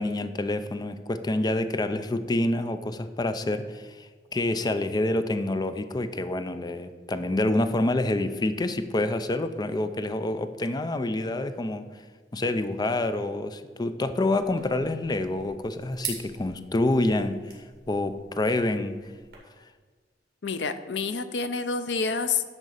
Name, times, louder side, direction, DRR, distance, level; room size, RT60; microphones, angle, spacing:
voice 1, 0.0-11.8 12.3-17.4 17.9-19.0, left 2 dB, 25° left, 10 dB, 0.5 m, -27 dB
sound 1, 14.3-19.3, right 6 dB, 60° right, 2.3 m, -43 dB
voice 2, 20.4-22.4, left 5 dB, 70° left, 11 dB, 0.6 m, -28 dB
10.5 x 3.7 x 6.6 m, 1.5 s
head